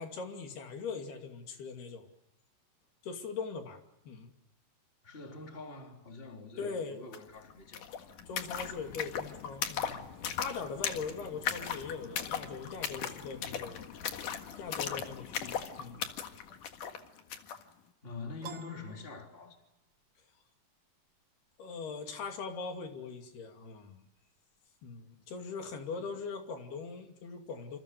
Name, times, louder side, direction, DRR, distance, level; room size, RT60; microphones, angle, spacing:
voice 1, 0.0-2.1 3.0-3.8 4.1-4.3 6.6-7.0 8.3-10.0 10.4-13.9 14.6-16.1 21.6-24.0 24.8-27.8, left 5 dB, 80° left, 4.6 m, -41 dB
voice 2, 5.0-8.1 18.0-19.6, left 4 dB, 15° left, 3.2 m, -45 dB
sound 1, 7.1-7.2 7.4-17.6, left 8 dB, 60° left, 3.0 m, -38 dB
Piano, 18.4-20.0, right 9 dB, 80° right, 1.3 m, -49 dB
27.5 x 27.5 x 6.7 m
omnidirectional pair, 4.5 m